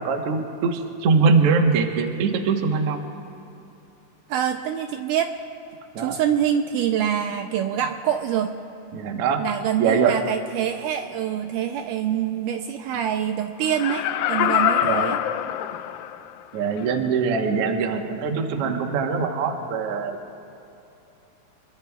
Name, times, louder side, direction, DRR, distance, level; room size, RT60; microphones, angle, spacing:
voice 1, 0.0-3.0 5.9-6.2 8.9-9.4 9.8-10.1 14.8-15.0 16.5-20.2, right 5 dB, 60° right, 4 dB, 1.6 m, -22 dB
voice 2, 4.3-5.3 6.0-8.5 9.4-15.2, right 9 dB, 80° right, 5 dB, 2.0 m, -25 dB
Laughter, 13.6-16.3 16.8-16.9, left 11 dB, 85° left, 2.3 m, -24 dB
28.0 x 22.0 x 2.3 m, 2.8 s
omnidirectional pair, 4.0 m